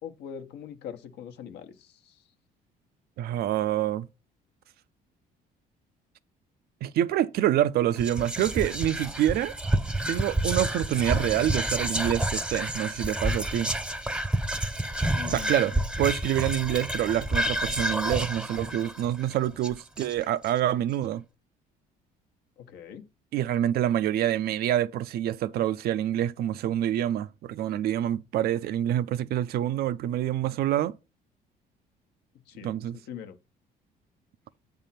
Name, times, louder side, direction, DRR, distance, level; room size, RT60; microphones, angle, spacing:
voice 1, 0.0-2.2 15.1-15.6 22.6-23.0 32.5-32.7 33.1-33.4, left 8 dB, 75° left, 1.0 m, -41 dB
voice 2, 3.2-4.1 6.8-9.5 10.1-13.7 15.3-21.2 23.3-31.0 32.6-33.0, right 12 dB, 65° right, 0.5 m, -27 dB
Whispering, 8.0-20.4, right 1 dB, 5° right, 0.7 m, -29 dB
8.2 x 3.5 x 5.7 m
cardioid pair, 110°, 17 cm